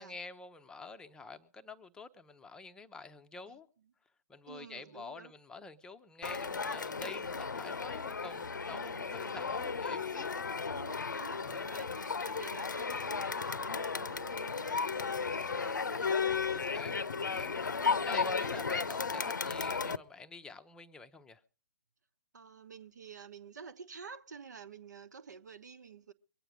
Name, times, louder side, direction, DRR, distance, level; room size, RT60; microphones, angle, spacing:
voice 1, 0.0-3.7 4.3-10.3 11.4-11.7 16.5-16.9 17.2-17.7 18.0-21.4, left 4 dB, 5° left, 0.7 m, -48 dB
voice 2, 4.5-5.3 8.7-9.8 10.7-17.0 17.8-18.1 22.3-26.1, right 6 dB, 65° right, 1.2 m, -51 dB
Crowd, 6.2-20.0, left 5 dB, 75° left, 0.7 m, -34 dB
23.5 x 9.0 x 5.0 m
figure-of-eight pair, 130°, 10 cm